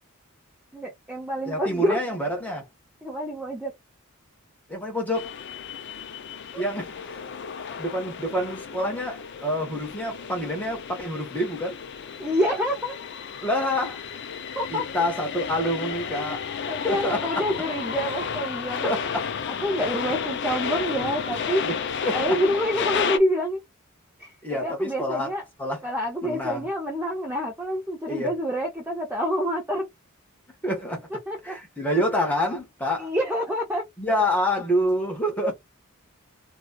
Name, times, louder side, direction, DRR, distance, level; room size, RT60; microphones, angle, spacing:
voice 1, 0.7-2.0 3.0-3.7 6.5-6.6 12.2-12.9 14.6-14.8 16.2-16.3 16.7-18.9 19.6-21.6 22.1-23.6 24.2-25.4 25.8-29.9 31.3-31.6 33.0-33.8, equal, 10° right, 0.7 m, -27 dB
voice 2, 1.5-2.7 4.7-5.3 6.5-7.2 7.6-11.8 13.4-14.0 14.7-16.5 16.8-17.4 18.8-19.3 21.6-22.2 24.4-25.3 25.6-25.8 26.2-26.7 28.1-28.3 30.6-31.1 31.4-33.1 34.0-35.6, equal, 5° left, 1.2 m, -27 dB
sound 1, 5.1-23.2, left 7 dB, 55° left, 0.4 m, -32 dB
2.9 x 2.4 x 2.2 m
head